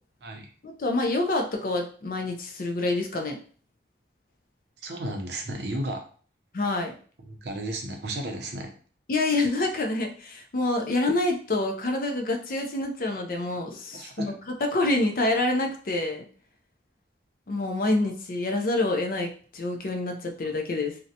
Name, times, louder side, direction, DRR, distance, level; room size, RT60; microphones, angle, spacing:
voice 1, 0.6-3.4 6.5-6.9 9.1-14.3 14.6-16.3 17.5-21.0, left 2 dB, 50° left, 3 dB, 0.4 m, -27 dB
voice 2, 4.8-6.0 7.2-8.7 13.4-13.5 13.9-14.4, right 1 dB, 65° right, 3 dB, 0.6 m, -34 dB
2.6 x 2.1 x 2.7 m, 0.42 s
head